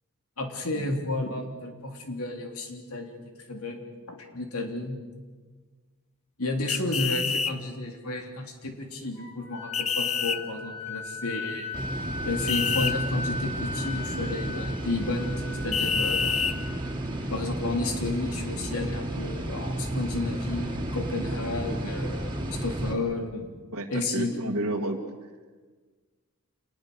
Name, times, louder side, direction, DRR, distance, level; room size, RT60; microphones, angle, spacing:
voice 1, 0.4-3.1 3.5-5.0 6.4-11.7 12.2-15.3 15.6-16.5 17.3-23.5 23.9-24.3, left 2 dB, 85° left, 3 dB, 3.5 m, -32 dB
sound 1, 6.7-7.5 9.7-10.4 12.5-12.9 15.7-16.6, left 6 dB, 30° left, 0.8 m, -27 dB
Wind instrument woodwind instrument, 9.2-16.9, left 4 dB, 50° left, 7.5 m, -37 dB
sound 2, 11.7-22.9, right 1 dB, 20° right, 2.9 m, -32 dB
voice 2, 23.7-25.0, right 1 dB, 80° right, -3 dB, 1.9 m, -31 dB
27.5 x 20.5 x 6.8 m, 1.4 s
head